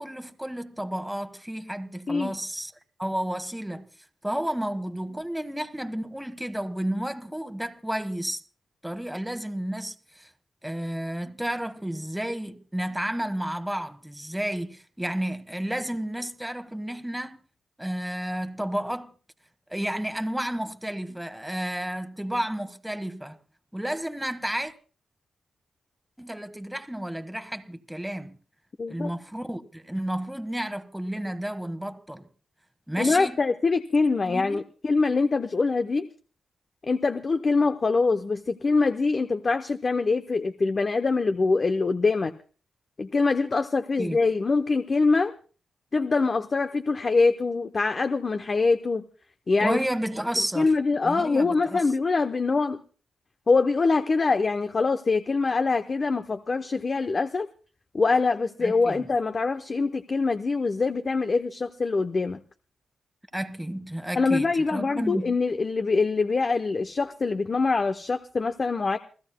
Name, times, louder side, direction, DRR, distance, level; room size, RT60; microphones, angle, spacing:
voice 1, 0.0-2.7 3.0-3.9 4.2-8.4 8.8-10.3 10.6-17.4 17.8-19.1 19.7-23.4 23.7-24.7 26.2-28.3 28.9-32.3 32.9-33.4 34.3-34.6 44.0-44.2 49.6-50.7 51.0-51.8 58.6-59.1 63.3-65.3, right 1 dB, 5° right, 1.3 m, -31 dB
voice 2, 28.8-29.1 33.0-36.1 36.8-42.3 43.0-45.3 45.9-49.1 49.5-49.8 50.6-52.8 53.5-57.5 57.9-62.4 64.2-69.0, left 4 dB, 45° left, 0.7 m, -24 dB
28.0 x 15.5 x 2.2 m
cardioid pair, 65°, 0 cm